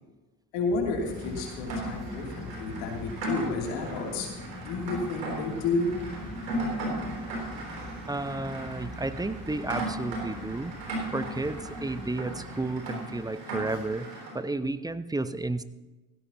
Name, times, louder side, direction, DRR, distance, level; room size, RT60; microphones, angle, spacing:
voice 1, 0.5-4.3 4.6-6.0, left 3 dB, 70° left, 0 dB, 3.1 m, -31 dB
sound 1, 0.7-12.8, left 2 dB, 10° left, 4.7 m, -44 dB
Rain, 1.0-14.4, right 1 dB, 90° right, 3.6 m, -37 dB
voice 2, 8.1-14.1 14.3-15.6, right 2 dB, 10° right, 12 dB, 0.8 m, -32 dB
16.5 x 16.5 x 2.9 m, 1.2 s
hypercardioid pair, 60°, 47 cm